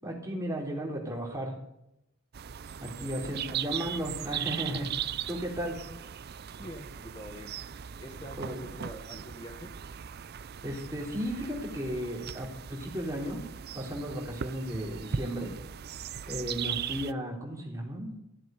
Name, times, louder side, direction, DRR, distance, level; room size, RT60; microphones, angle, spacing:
voice 1, 0.0-1.5 2.8-5.0 5.3-5.8 8.4-8.7 10.6-13.4 13.8-15.5 16.3-18.1, equal, 15° right, -1 dB, 3.7 m, -35 dB
sound 1, 2.3-17.1, right 8 dB, 45° right, 0.5 m, -38 dB
voice 2, 2.9-3.4 6.6-7.6 8.0-9.7, equal, 20° left, 3 dB, 1.2 m, -45 dB
15.0 x 7.7 x 9.0 m, 0.82 s
head